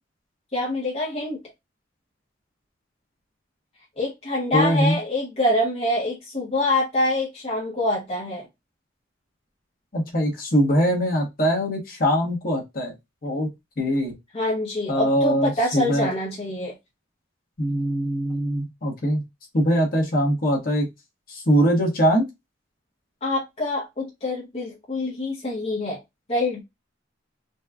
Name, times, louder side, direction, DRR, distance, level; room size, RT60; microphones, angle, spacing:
voice 1, 0.5-1.4 4.0-8.4 14.3-16.7 23.2-26.0 26.3-26.6, left 1 dB, 35° left, 0.8 m, -25 dB
voice 2, 4.5-5.0 9.9-12.9 13.2-13.5 13.8-14.1 14.9-16.1 17.6-19.2 19.5-20.9 21.3-22.3, equal, 50° left, 1.2 m, -22 dB
4.1 x 2.3 x 2.3 m
head